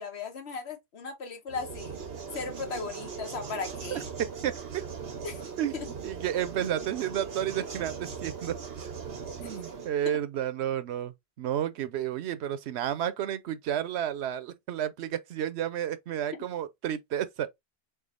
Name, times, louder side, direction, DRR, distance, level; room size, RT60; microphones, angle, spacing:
voice 1, 0.0-2.0 2.3-4.1 5.2-5.4 5.7-5.9 9.4-9.5 10.0-10.2, left 4 dB, 80° left, 1.3 m, -37 dB
sound 1, 1.5-9.9, right 5 dB, 65° right, 1.2 m, -39 dB
voice 2, 6.0-7.9 8.2-8.5 9.4-17.5, right 10 dB, 85° right, 0.9 m, -31 dB
3.8 x 3.5 x 2.4 m
omnidirectional pair, 1.1 m